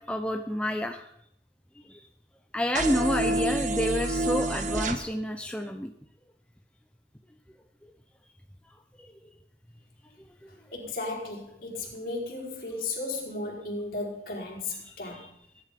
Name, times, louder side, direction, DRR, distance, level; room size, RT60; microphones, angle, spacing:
voice 1, 0.1-1.1 1.9-2.1 2.5-5.9 9.0-9.1 10.4-10.5 14.8-15.3, equal, 5° left, 0.8 m, -29 dB
sound 1, 2.7-5.0, right 2 dB, 45° right, 1.5 m, -28 dB
voice 2, 10.7-15.3, left 2 dB, 55° left, 4.8 m, -35 dB
21.5 x 11.0 x 5.2 m
head